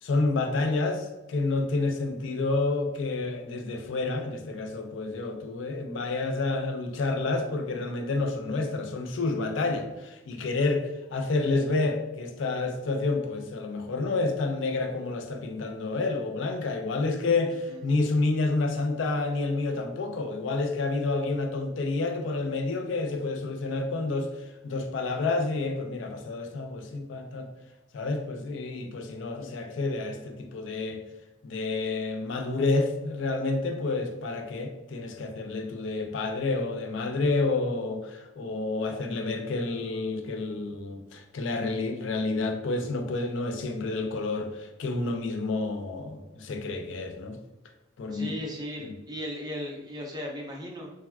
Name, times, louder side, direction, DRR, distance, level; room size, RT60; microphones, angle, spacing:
voice 1, 0.0-24.3 24.6-27.5 27.9-31.0 31.4-47.4 48.0-48.4, left 3 dB, 80° left, 5 dB, 0.4 m, -29 dB
voice 2, 29.4-29.7 48.1-50.9, equal, 20° right, -1 dB, 0.5 m, -37 dB
3.3 x 2.2 x 2.2 m, 1.0 s
head